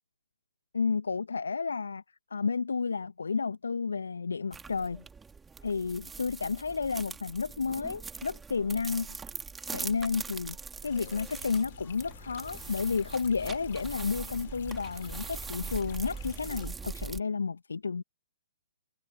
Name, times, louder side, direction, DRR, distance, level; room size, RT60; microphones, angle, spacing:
voice 1, 0.7-2.0 2.3-5.0 5.6-9.2 9.7-10.6 10.8-18.0, left 5 dB, 75° left, 1.2 m, -31 dB
sound 1, 4.5-17.2, right 5 dB, 10° right, 2.7 m, -42 dB
sound 2, 10.8-16.7, left 11 dB, 50° left, 2.9 m, -49 dB
figure-of-eight pair, 120°, 0 cm